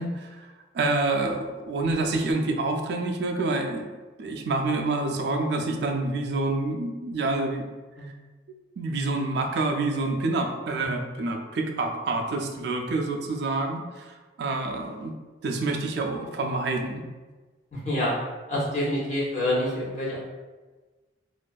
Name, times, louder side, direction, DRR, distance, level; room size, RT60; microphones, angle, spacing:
voice 1, 0.0-3.9 4.2-7.6 8.0-8.1 8.8-15.1 15.4-17.0, right 2 dB, 60° right, 3 dB, 0.3 m, -27 dB
voice 2, 17.7-18.1 18.5-20.2, left 1 dB, 40° left, -7 dB, 0.8 m, -27 dB
2.5 x 2.3 x 2.2 m, 1.3 s
head